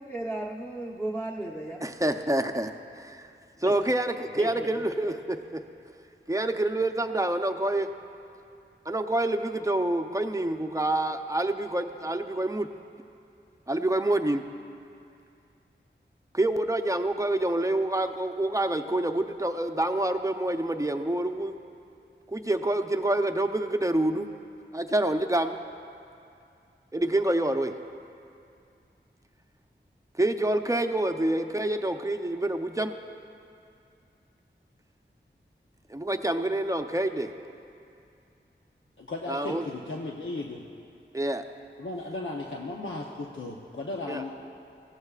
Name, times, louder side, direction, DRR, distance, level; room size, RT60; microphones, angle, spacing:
voice 1, 0.0-1.8 3.6-3.8 4.4-4.9, right 1 dB, 10° left, -2 dB, 0.9 m, -35 dB
voice 2, 1.8-3.3 3.6-5.6 6.3-7.9 8.9-12.7 13.7-14.4 16.3-21.6 22.3-24.3 24.7-25.6 26.9-27.7 30.2-33.0 35.9-37.3 39.3-39.6 41.1-41.4 44.1-44.2, right 1 dB, 15° right, 6 dB, 0.7 m, -27 dB
voice 3, 39.0-40.6 41.8-44.3, left 2 dB, 85° left, -2 dB, 0.8 m, -35 dB
19.0 x 15.0 x 2.4 m, 2.5 s
wide cardioid pair, 45°, 20 cm